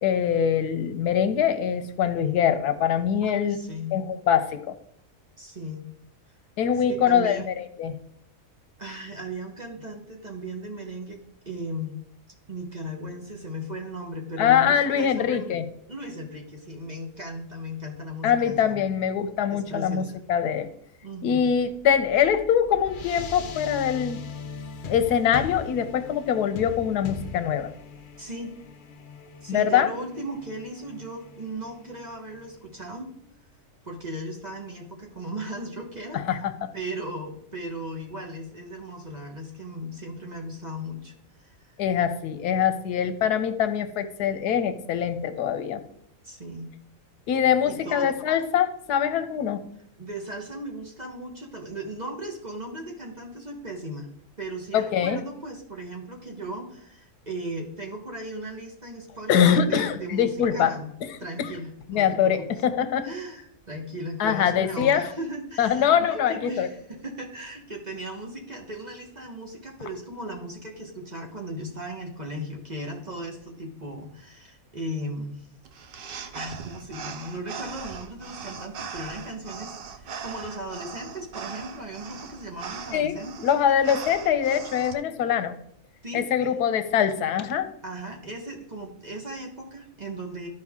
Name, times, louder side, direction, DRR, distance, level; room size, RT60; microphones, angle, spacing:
voice 1, 0.0-3.6 3.9-4.8 6.6-7.9 14.4-15.6 18.2-20.7 21.2-24.2 24.9-27.7 29.5-29.9 36.1-36.7 41.8-45.8 47.3-49.6 54.7-55.2 59.3-60.7 61.4-61.5 61.9-63.1 64.2-65.1 65.6-66.7 82.9-83.2 83.4-85.5 86.1-87.7, left 8 dB, 85° left, 10 dB, 1.3 m, -23 dB
voice 2, 3.2-4.0 5.4-5.9 6.8-7.5 8.8-11.2 11.4-12.0 12.5-15.5 15.9-18.8 19.5-20.1 21.0-21.5 28.2-28.6 29.4-33.1 33.8-36.2 36.7-41.1 41.4-41.7 46.2-46.7 47.7-48.2 50.0-54.1 54.4-60.9 61.2-62.5 63.0-75.5 76.3-83.5 86.0-86.2 87.8-90.5, right 1 dB, 30° right, 1 dB, 1.1 m, -37 dB
sound 1, 21.7-32.5, left 5 dB, 70° left, 0.4 m, -40 dB
sound 2, 75.6-84.9, right 6 dB, 60° right, 0.5 m, -40 dB
13.0 x 4.8 x 3.6 m, 0.72 s
omnidirectional pair, 1.6 m